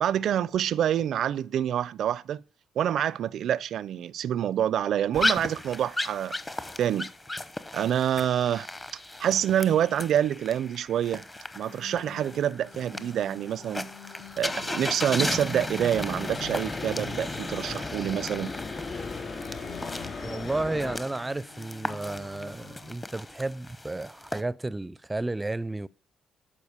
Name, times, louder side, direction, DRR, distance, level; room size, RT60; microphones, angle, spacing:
voice 1, 0.0-2.4 2.8-6.3 6.8-7.1 7.7-8.7 9.2-11.3 11.6-13.9 14.4-18.5, right 10 dB, 70° right, 0.4 m, -27 dB
sound 1, 5.1-24.4, left 2 dB, 20° left, 0.9 m, -35 dB
sound 2, 11.6-22.9, left 4 dB, 75° left, 2.5 m, -48 dB
sound 3, 15.9-21.0, left 4 dB, 45° left, 4.2 m, -37 dB
voice 2, 20.2-25.9, right 2 dB, 15° right, 0.4 m, -32 dB
12.0 x 5.2 x 8.1 m
cardioid pair, 85°, 0 cm